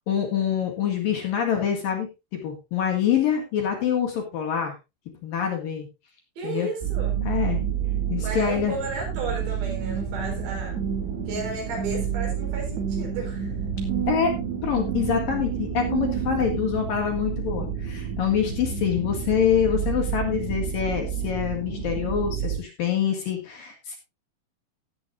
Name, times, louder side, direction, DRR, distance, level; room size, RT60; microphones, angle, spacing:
voice 1, 0.1-2.1 2.4-4.8 5.2-5.9 6.4-6.7 7.2-7.6 8.1-8.7 14.1-14.3 14.6-24.0, left 8 dB, 55° left, 2 dB, 3.2 m, -25 dB
voice 2, 6.4-7.2 8.2-10.8 11.3-13.5, right 3 dB, 65° right, 1 dB, 6.4 m, -33 dB
sound 1, 6.8-22.6, right 7 dB, 85° right, 7.4 m, -30 dB
sound 2, 9.8-16.6, right 9 dB, 50° right, 2.5 m, -32 dB
16.5 x 8.5 x 2.5 m, 0.25 s
omnidirectional pair, 5.3 m